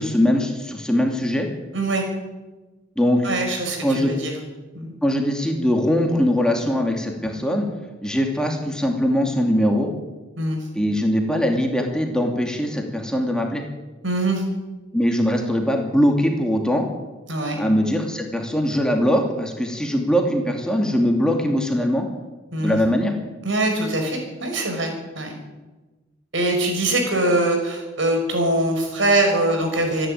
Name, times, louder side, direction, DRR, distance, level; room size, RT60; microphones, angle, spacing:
voice 1, 0.0-1.5 3.0-3.2 3.8-4.2 5.0-7.7 8.0-9.9 10.7-13.6 14.9-16.9 17.6-22.1 22.6-23.1, equal, 5° left, 2 dB, 2.6 m, -21 dB
voice 2, 1.7-2.0 3.2-4.3 4.7-4.9 10.4-10.6 14.0-14.4 17.3-17.6 22.5-22.8 23.4-25.4 26.3-30.1, right 2 dB, 75° right, 3 dB, 5.9 m, -22 dB
26.0 x 11.0 x 9.5 m, 1.2 s
head